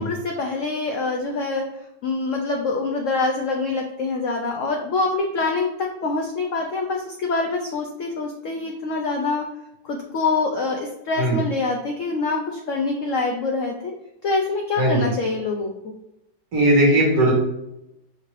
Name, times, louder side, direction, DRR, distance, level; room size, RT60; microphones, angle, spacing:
voice 1, 0.0-1.6 2.0-5.7 6.0-9.5 9.8-13.9 14.2-15.7, left 3 dB, 85° left, 1 dB, 0.6 m, -25 dB
voice 2, 14.8-15.1 16.5-17.3, right 1 dB, 55° right, -3 dB, 1.6 m, -18 dB
5.6 x 2.5 x 3.1 m, 0.86 s
omnidirectional pair, 1.9 m